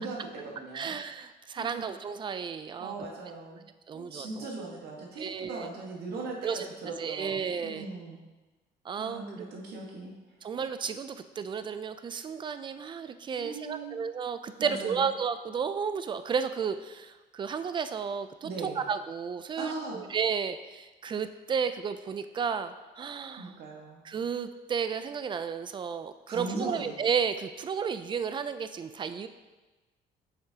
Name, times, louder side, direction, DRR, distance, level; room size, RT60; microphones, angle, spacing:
voice 1, 0.0-0.9 1.6-1.9 2.8-3.6 3.9-8.2 9.0-10.1 13.4-14.0 14.6-15.0 18.4-18.8 19.6-20.0 23.4-24.0 26.3-27.0, right 3 dB, 70° right, -1 dB, 1.6 m, -39 dB
voice 2, 0.7-2.9 3.9-4.5 5.2-5.7 6.4-6.7 7.0-7.9 8.8-9.5 10.4-23.5 24.0-29.3, right 6 dB, 30° right, 11 dB, 0.4 m, -33 dB
7.8 x 5.8 x 2.8 m, 1.2 s
cardioid pair, 110°, 17 cm